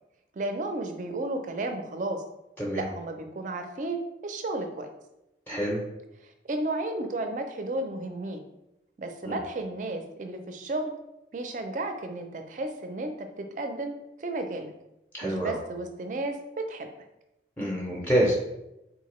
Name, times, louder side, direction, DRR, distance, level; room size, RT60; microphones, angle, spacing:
voice 1, 0.3-2.2 2.7-4.9 6.2-8.4 9.0-11.0 11.3-14.7 15.2-16.9, right 2 dB, 45° right, 6 dB, 0.4 m, -33 dB
voice 2, 5.5-5.8 9.2-9.4 15.1-15.6 17.6-18.3, right 1 dB, 10° left, -4 dB, 0.5 m, -26 dB
3.8 x 2.8 x 3.0 m, 0.89 s
head